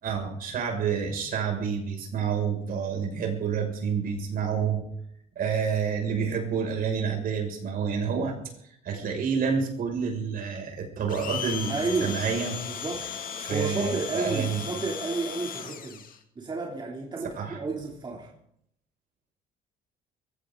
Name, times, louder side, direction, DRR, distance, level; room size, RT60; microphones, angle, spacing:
voice 1, 0.0-4.8 5.3-8.3 8.8-12.6 13.4-14.6 17.4-17.6, right 6 dB, 60° right, 2 dB, 6.3 m, -28 dB
Domestic sounds home sounds, 11.1-16.2, left 8 dB, 55° left, 2.3 m, -36 dB
voice 2, 11.7-12.2 12.7-13.1 13.5-16.0 16.3-18.3, right 3 dB, 25° right, -1 dB, 3.1 m, -31 dB
22.5 x 16.0 x 3.9 m, 0.73 s
cardioid pair, 110°, 17 cm